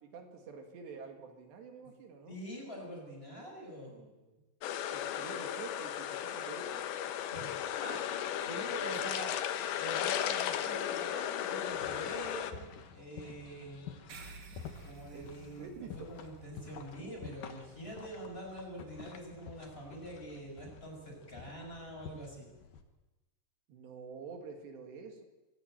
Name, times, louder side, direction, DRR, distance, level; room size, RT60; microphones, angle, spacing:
voice 1, 0.0-2.4 3.9-4.5 4.9-6.8 15.1-15.3 15.6-15.9 23.7-25.2, right 5 dB, 75° right, 4 dB, 4.3 m, -48 dB
voice 2, 2.3-3.9 7.3-9.4 9.8-12.7 12.9-13.8 14.8-22.5, equal, 15° left, -1 dB, 6.2 m, -45 dB
sound 1, 4.6-12.5, left 10 dB, 85° left, 3.4 m, -35 dB
sound 2, 11.7-22.8, left 6 dB, 60° left, 2.7 m, -50 dB
sound 3, 14.1-18.9, right 4 dB, 55° right, 3.5 m, -54 dB
24.0 x 14.5 x 9.1 m, 1.1 s
omnidirectional pair, 4.9 m